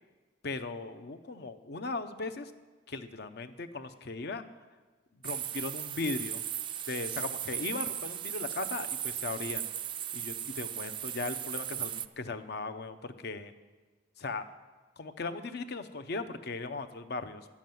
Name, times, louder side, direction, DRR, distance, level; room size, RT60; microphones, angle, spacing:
voice 1, 0.4-2.5 2.9-4.4 5.2-6.4 6.9-9.6 10.1-13.5 14.2-14.4 15.0-17.5, left 3 dB, 60° left, 9 dB, 0.7 m, -38 dB
sound 1, 5.2-12.1, right 10 dB, 25° right, 0.3 m, -37 dB
12.0 x 7.2 x 9.2 m, 1.4 s
head